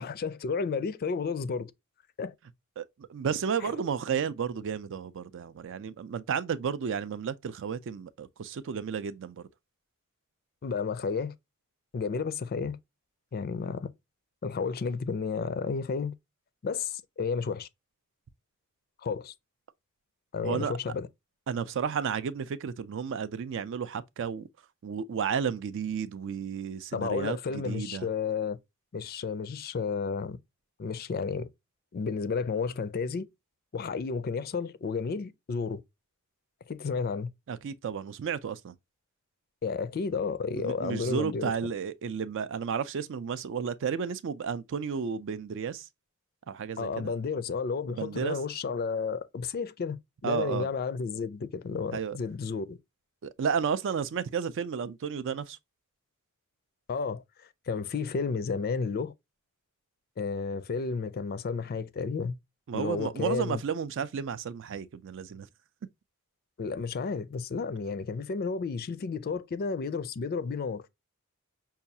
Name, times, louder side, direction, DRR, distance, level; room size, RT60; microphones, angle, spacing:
voice 1, 0.0-1.7 2.2-2.3 3.6-3.7 10.6-11.3 11.9-12.8 13.3-13.9 14.4-16.1 16.6-17.7 19.0-19.3 20.3-21.1 26.9-28.6 28.9-30.4 30.8-31.5 31.9-33.3 33.7-35.8 36.7-37.3 39.6-41.5 46.8-52.8 56.9-59.1 60.2-62.4 62.7-63.6 66.6-70.9, left 5 dB, 45° left, 0.4 m, -32 dB
voice 2, 2.8-9.5 20.4-20.7 21.5-24.5 24.8-28.1 37.5-38.8 40.6-45.9 46.5-47.1 47.9-48.4 50.2-50.7 51.9-52.2 53.2-55.6 62.7-65.5, right 6 dB, 55° right, 0.4 m, -32 dB
5.5 x 2.3 x 2.7 m
head